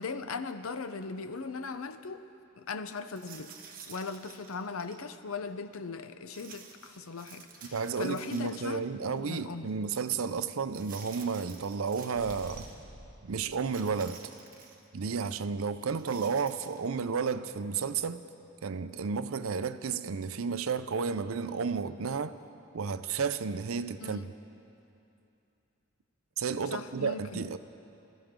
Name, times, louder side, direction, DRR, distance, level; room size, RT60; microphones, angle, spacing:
voice 1, 0.0-2.3 2.6-3.6 3.9-8.9 9.1-9.7 24.0-24.3 26.7-27.5, left 4 dB, 85° left, 0.7 m, -39 dB
sound 1, 3.1-5.0 6.3-8.9 9.2-9.3 10.7-12.7 13.6-14.9 15.8-16.8, right 6 dB, 45° right, 1.3 m, -51 dB
voice 2, 7.7-12.7 13.2-14.2 14.9-18.2 18.6-22.3 22.7-24.3 26.4-27.6, right 5 dB, 80° right, 0.6 m, -32 dB
sound 2, 12.1-14.0, equal, 50° left, 5.0 m, -49 dB
25.5 x 14.0 x 3.7 m
head